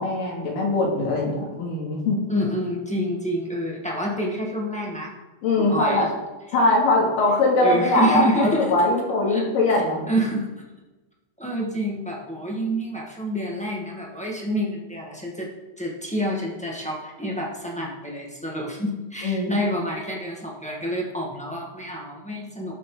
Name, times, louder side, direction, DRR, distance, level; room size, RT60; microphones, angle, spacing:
voice 1, 0.0-2.2 5.4-6.1 6.5-10.0 19.2-19.5, left 2 dB, 90° left, -2 dB, 4.2 m, -21 dB
voice 2, 2.3-5.1 5.6-6.1 7.6-8.6 9.3-9.4 9.7-9.8 10.1-10.6 11.4-15.5 15.8-22.8, equal, 10° left, -3 dB, 0.4 m, -28 dB
19.5 x 7.3 x 3.9 m, 1.1 s
omnidirectional pair, 3.7 m